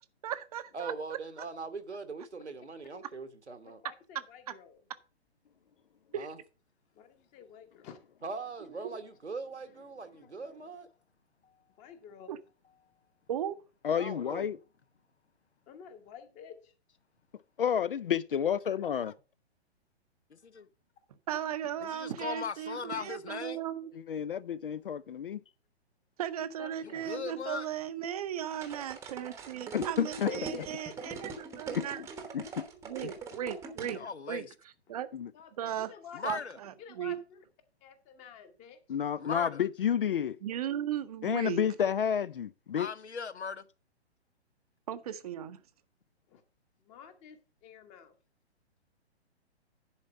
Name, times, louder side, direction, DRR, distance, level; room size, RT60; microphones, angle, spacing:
voice 1, 0.2-0.9 6.1-6.3 12.3-12.4 13.3-13.6 21.3-23.9 26.2-32.0 32.9-34.0 34.3-34.4 34.9-35.1 35.6-35.9 36.2-37.2 40.4-41.6 44.9-45.6, right 10 dB, 35° right, 0.7 m, -36 dB
voice 2, 0.7-3.8 6.1-6.4 8.2-10.9 13.9-14.5 26.9-27.1, right 4 dB, 80° right, 1.4 m, -41 dB
voice 3, 3.8-4.8 7.0-8.0 11.8-12.4 15.7-16.7 26.6-27.1 30.3-31.2 35.3-35.5 35.9-36.2 36.8-37.4 37.8-38.8 39.2-39.3 46.3-46.4 46.8-48.1, left 7 dB, 20° left, 1.1 m, -49 dB
voice 4, 13.8-14.6 17.6-19.1 23.9-25.4 29.7-30.3 31.7-31.8 32.3-32.6 35.1-35.3 38.9-40.4 41.2-42.9, left 8 dB, 55° left, 0.5 m, -30 dB
voice 5, 20.3-20.7 21.8-23.6 26.8-27.7 33.9-34.5 36.1-36.6 39.2-39.6 42.7-43.7, left 5 dB, 75° left, 0.8 m, -38 dB
sound 1, 28.5-34.0, right 5 dB, 10° right, 0.9 m, -42 dB
10.5 x 4.3 x 6.1 m
figure-of-eight pair, 125°, 33 cm